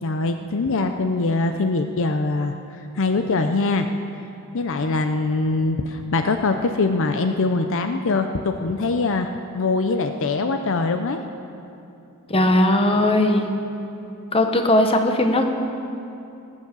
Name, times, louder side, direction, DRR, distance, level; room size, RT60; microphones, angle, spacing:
voice 1, 0.0-2.5 2.9-3.9 4.5-11.2, left 3 dB, 65° left, 7 dB, 0.6 m, -23 dB
voice 2, 12.3-13.5 14.3-15.4, left 1 dB, 25° left, 5 dB, 1.1 m, -18 dB
19.0 x 8.2 x 6.9 m, 2.7 s
head